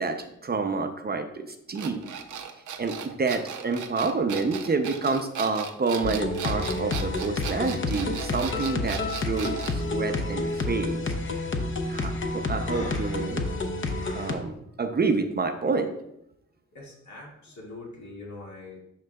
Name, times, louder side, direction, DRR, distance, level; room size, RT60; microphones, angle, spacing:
voice 1, 0.0-2.1 2.8-11.0 11.9-13.5 14.1-15.9, right 4 dB, 35° right, 6 dB, 0.5 m, -28 dB
sound 1, 1.7-9.8, right 7 dB, 85° right, 0.7 m, -37 dB
sound 2, 6.0-14.3, left 2 dB, 40° left, 0.7 m, -29 dB
Breathing, 12.7-14.4, left 2 dB, 25° left, 1.3 m, -40 dB
voice 2, 14.5-14.8 16.7-18.8, left 2 dB, 70° left, -3 dB, 2.0 m, -44 dB
11.5 x 3.8 x 2.3 m, 0.80 s
wide cardioid pair, 120°, 29 cm